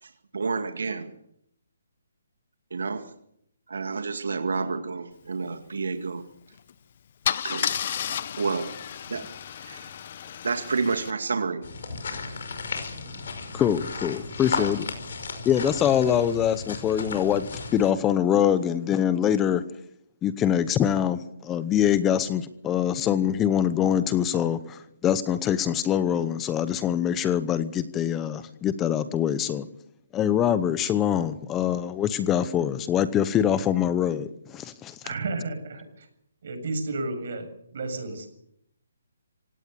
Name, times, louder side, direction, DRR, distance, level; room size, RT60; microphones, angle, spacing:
voice 1, 0.0-1.1 2.7-3.1 3.7-6.2 7.4-8.7 9.1-9.3 9.6-9.9 10.4-11.7, right 4 dB, 80° right, 6 dB, 2.1 m, -30 dB
Car / Engine starting / Idling, 6.5-6.7 7.2-11.1, left 9 dB, 40° left, 0.9 m, -32 dB
sound 1, 11.6-17.9, left 4 dB, 55° left, 5.5 m, -34 dB
voice 2, 13.5-14.9 15.4-19.6 20.2-29.7 30.1-35.0, left 9 dB, 10° left, 14 dB, 0.8 m, -24 dB
voice 3, 35.0-36.1 36.4-38.3, right 3 dB, 50° right, 7 dB, 7.3 m, -32 dB
26.0 x 18.0 x 6.9 m, 0.74 s
hypercardioid pair, 170°, 0 cm